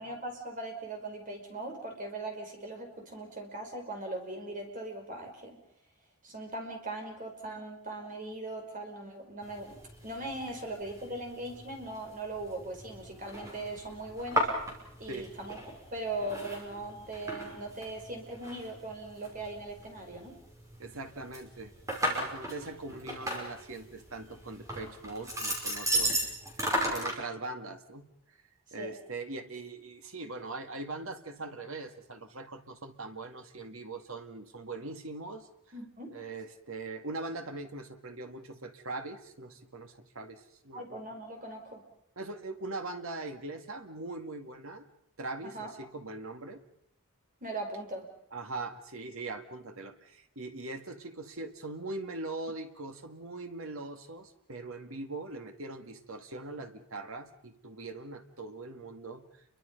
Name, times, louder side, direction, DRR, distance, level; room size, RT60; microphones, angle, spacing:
voice 1, 0.0-5.6 6.2-14.5 15.0-20.4 28.8-28.9 35.7-36.1 40.7-41.8 45.4-45.7 47.4-48.1, right 2 dB, 40° right, 2 dB, 5.4 m, -40 dB
sound 1, 9.4-27.2, equal, 15° right, 5.6 m, -36 dB
voice 2, 20.8-21.7 22.0-26.3 26.8-28.1 28.7-35.5 36.1-41.0 42.2-44.9 45.2-46.6 48.3-59.2, right 2 dB, 70° right, 6 dB, 2.2 m, -41 dB
29.5 x 23.5 x 5.5 m, 0.72 s
head